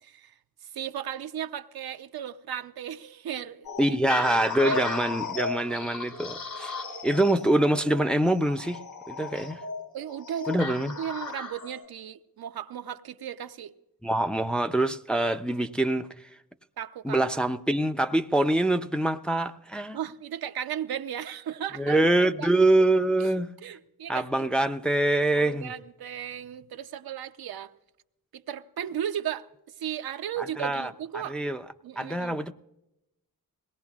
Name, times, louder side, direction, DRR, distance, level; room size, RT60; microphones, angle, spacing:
voice 1, 0.0-0.3 0.7-4.0 4.6-4.8 9.9-13.7 16.8-17.2 19.9-22.0 22.4-22.6 23.6-24.5 25.4-27.7 28.3-29.5 29.8-31.3 31.8-32.4, right 10 dB, 80° right, 0.7 m, -35 dB
sound 1, 3.6-11.8, left 3 dB, 70° left, 4.9 m, -35 dB
voice 2, 3.8-6.8 7.0-8.8 9.1-9.6 10.5-10.9 14.0-16.3 17.0-20.0 21.8-23.5 24.1-25.7 30.4-31.6 32.0-32.5, right 1 dB, 5° left, 0.4 m, -25 dB
21.0 x 18.0 x 2.4 m
cardioid pair, 85°, 37 cm